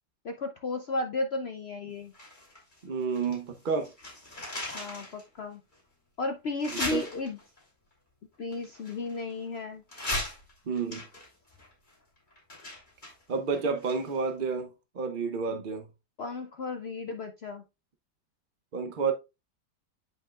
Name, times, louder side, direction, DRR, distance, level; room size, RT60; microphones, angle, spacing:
voice 1, 0.2-2.1 4.7-5.6 6.2-7.4 8.4-9.8 16.2-17.6, left 3 dB, 65° left, 0.6 m, -34 dB
sound 1, 2.1-3.4 3.7-5.2 5.7-5.8 6.6-7.6 8.5-9.5 9.9-14.3 14.6-14.7, left 1 dB, 25° left, 3.2 m, -38 dB
voice 2, 2.8-3.9 6.9-7.0 10.7-11.0 13.3-15.9 18.7-19.1, right 5 dB, 45° right, 0.6 m, -30 dB
9.7 x 5.4 x 2.4 m
omnidirectional pair, 1.8 m